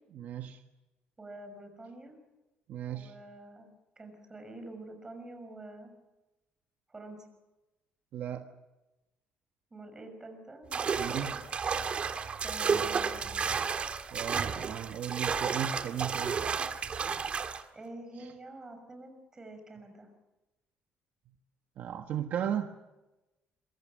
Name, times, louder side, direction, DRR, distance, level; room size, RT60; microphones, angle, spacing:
voice 1, 0.1-0.6 2.7-3.1 8.1-8.5 11.0-11.4 14.1-16.4 18.2-18.3 21.8-22.7, right 9 dB, 55° right, 5 dB, 1.4 m, -35 dB
voice 2, 1.2-2.2 2.9-3.7 4.0-5.9 6.9-7.3 9.7-10.8 11.1-11.4 12.4-13.5 17.7-20.1, right 2 dB, 15° right, 6 dB, 6.1 m, -47 dB
sound 1, 10.7-17.6, right 6 dB, 35° right, 1.6 m, -32 dB
27.5 x 24.0 x 6.5 m, 1.0 s
cardioid pair, 160°, 4 cm